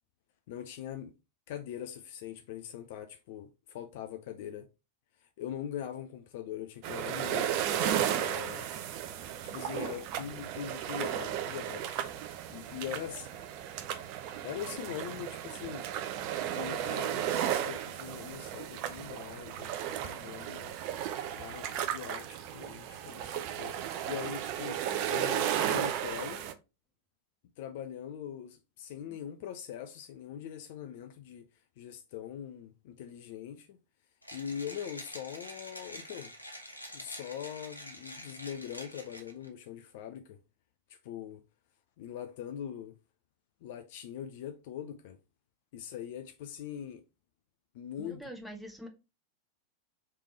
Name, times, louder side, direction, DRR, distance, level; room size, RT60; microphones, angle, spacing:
voice 1, 0.5-1.1 1.5-4.7 5.2-8.7 9.4-13.3 14.4-15.9 16.4-20.8 21.3-23.8 24.0-24.8 25.1-26.5 27.6-31.5 31.8-33.8 34.3-36.3 36.9-40.4 40.9-41.4 42.0-43.0 43.6-45.2 45.7-47.0 47.7-48.2, left 9 dB, 50° left, 0.4 m, -42 dB
sound 1, 6.8-26.5, right 10 dB, 45° right, 0.6 m, -34 dB
Mechanisms, 34.2-39.5, left 1 dB, 85° left, 0.8 m, -46 dB
voice 2, 48.0-48.9, right 1 dB, ahead, 1.0 m, -45 dB
3.4 x 3.3 x 4.0 m
figure-of-eight pair, 90°, 0 cm